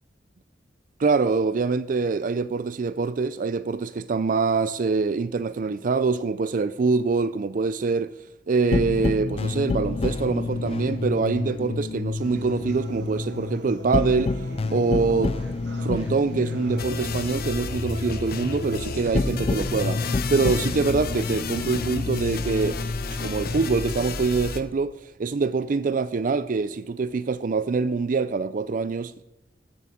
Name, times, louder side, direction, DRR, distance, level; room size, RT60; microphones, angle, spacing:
voice 1, 1.0-8.1 8.5-15.3 15.8-22.8 23.2-29.2, right 4 dB, 45° right, 0.4 m, -25 dB
sound 1, 8.7-23.9, left 3 dB, 35° left, 0.4 m, -29 dB
sound 2, 12.2-20.2, right 2 dB, 75° right, 2.0 m, -43 dB
Road Trip, 16.8-24.6, left 3 dB, 55° left, 1.0 m, -32 dB
13.5 x 7.7 x 8.4 m
head